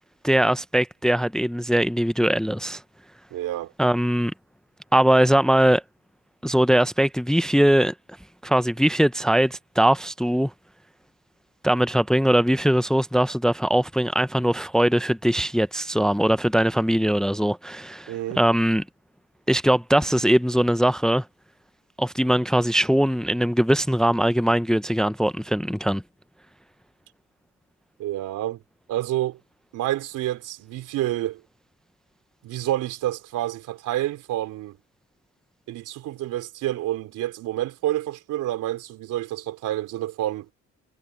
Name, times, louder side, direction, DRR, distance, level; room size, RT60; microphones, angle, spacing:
voice 1, 0.2-2.8 3.8-4.3 4.9-5.8 6.4-7.9 8.4-10.5 11.6-18.8 19.5-21.2 22.0-26.0, right 1 dB, ahead, 0.6 m, -21 dB
voice 2, 3.3-3.7 18.1-18.4 28.0-28.6 28.9-29.4 29.7-31.4 32.4-34.8 35.7-40.5, right 14 dB, 90° right, 3.6 m, -28 dB
cardioid pair, 90°, 30 cm